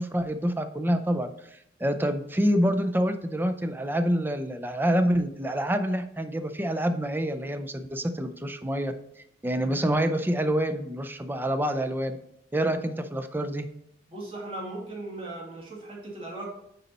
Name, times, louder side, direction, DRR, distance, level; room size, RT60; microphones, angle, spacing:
voice 1, 0.0-8.9 9.4-12.2 12.5-13.7, equal, 10° right, 8 dB, 0.4 m, -27 dB
voice 2, 14.1-16.5, right 2 dB, 30° right, -4 dB, 2.2 m, -38 dB
9.4 x 4.1 x 4.1 m, 0.74 s
head